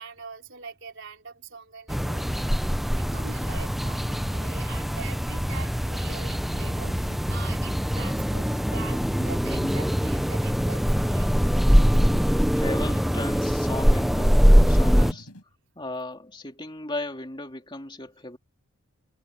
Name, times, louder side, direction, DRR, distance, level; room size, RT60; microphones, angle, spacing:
voice 1, 0.0-11.3, right 5 dB, 55° right, 4.5 m, -43 dB
sound 1, 1.9-15.1, equal, ahead, 0.4 m, -23 dB
sound 2, 6.2-15.4, equal, 80° left, 7.5 m, -47 dB
voice 2, 12.3-15.3 15.7-18.4, left 2 dB, 20° left, 3.1 m, -36 dB
head